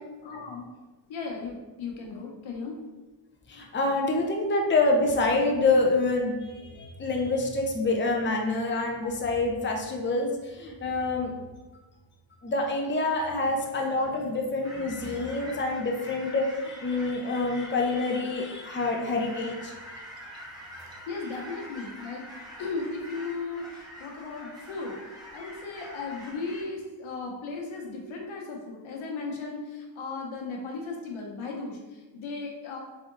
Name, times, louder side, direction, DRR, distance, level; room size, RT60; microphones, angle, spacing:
voice 1, 0.2-0.7 1.1-2.8 9.0-9.1 13.7-13.8 20.8-22.3 22.6-25.0 25.3-32.8, left 4 dB, 85° left, 0 dB, 1.0 m, -36 dB
voice 2, 3.5-11.3 12.4-19.9 20.7-21.0, left 2 dB, 25° left, 1 dB, 0.7 m, -27 dB
sound 1, 14.6-26.6, equal, 10° right, 1.3 m, -45 dB
3.8 x 3.5 x 3.8 m, 1.2 s
cardioid pair, 90°, 47 cm